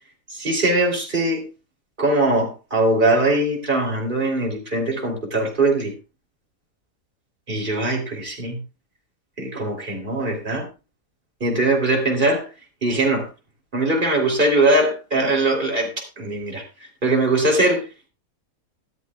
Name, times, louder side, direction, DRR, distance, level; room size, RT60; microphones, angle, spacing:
voice 1, 0.3-1.4 2.0-5.9 7.5-8.6 9.4-10.7 11.4-12.5 12.8-13.3 13.7-15.9 16.2-16.6 17.0-17.9, right 2 dB, 35° right, 1 dB, 3.4 m, -21 dB
15.0 x 12.5 x 2.3 m, 0.28 s
omnidirectional pair, 1.5 m